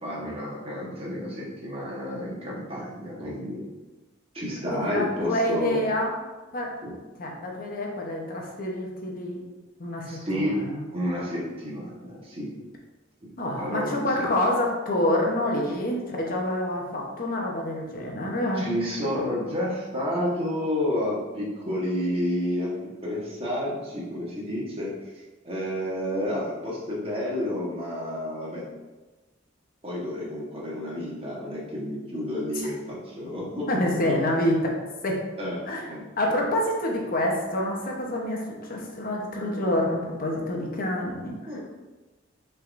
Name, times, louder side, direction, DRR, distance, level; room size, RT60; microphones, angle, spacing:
voice 1, 0.0-3.7 4.3-5.8 6.8-6.9 10.1-10.6 10.9-12.5 13.2-13.3 13.6-14.3 18.6-22.7 23.0-24.9 25.4-28.7 29.8-33.7 34.0-34.1 35.4-35.6 35.9-36.0 41.5-41.6, left 1 dB, 30° right, -5 dB, 1.2 m, -30 dB
voice 2, 4.7-6.2 6.5-6.7 7.2-9.4 9.8-10.8 13.4-18.7 32.6-32.7 33.7-34.8 35.0-35.2 35.7-35.8 36.2-41.6, left 1 dB, 45° left, -1 dB, 0.8 m, -27 dB
5.5 x 3.5 x 2.5 m, 1.2 s
head